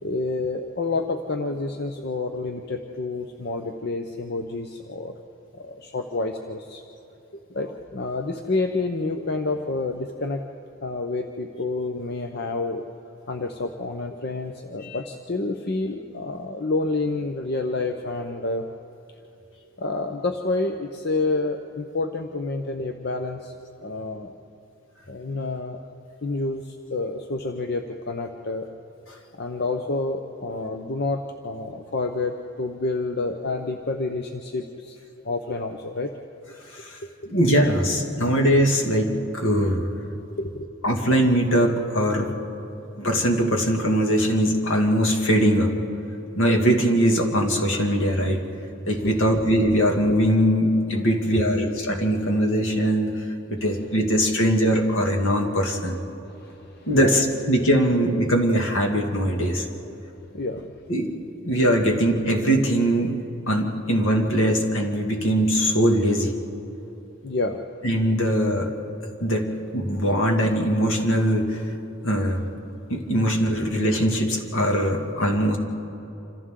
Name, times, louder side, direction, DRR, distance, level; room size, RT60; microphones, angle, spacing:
voice 1, 0.0-5.1 5.5-6.8 7.5-10.4 10.8-12.8 13.3-18.6 19.8-23.5 23.8-24.3 25.1-25.8 26.2-28.7 29.4-35.0 35.2-36.1 40.4-40.7 48.9-49.3 49.8-50.0 51.1-51.7 52.2-52.3 53.6-53.9 56.2-57.4 57.8-57.9 60.2-60.7 67.2-67.6, left 3 dB, 55° left, 4 dB, 0.8 m, -29 dB
voice 2, 37.3-39.9 40.8-42.3 43.0-45.7 46.4-48.4 48.9-56.0 56.9-59.7 60.9-61.1 61.4-63.1 63.5-66.3 67.8-68.7 69.2-69.5 69.7-71.7 72.0-72.5 72.9-75.6, equal, 75° left, 2 dB, 2.2 m, -21 dB
27.5 x 26.0 x 3.8 m, 2.9 s
head